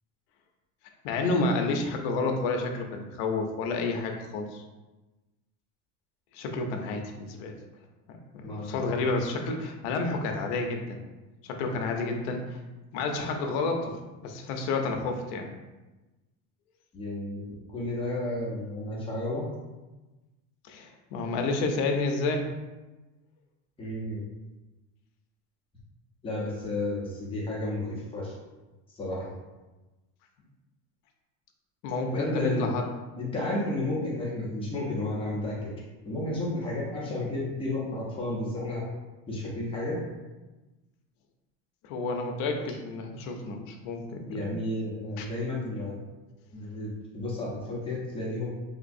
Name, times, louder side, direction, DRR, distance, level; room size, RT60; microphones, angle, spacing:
voice 1, 1.0-4.6 6.3-7.5 8.1-11.0 11.4-12.6 12.9-15.5 20.6-22.5 31.8-32.9 41.8-44.6 45.2-45.3, left 3 dB, 70° left, 3 dB, 0.6 m, -30 dB
voice 2, 8.4-8.8 16.9-19.4 23.8-24.2 26.2-28.3 28.9-29.3 32.1-32.7 33.2-35.7 36.0-38.8 39.3-40.0 44.3-46.0 46.5-48.5, left 1 dB, 15° left, -5 dB, 0.7 m, -32 dB
3.3 x 2.9 x 2.6 m, 1.1 s
cardioid pair, 165°, 37 cm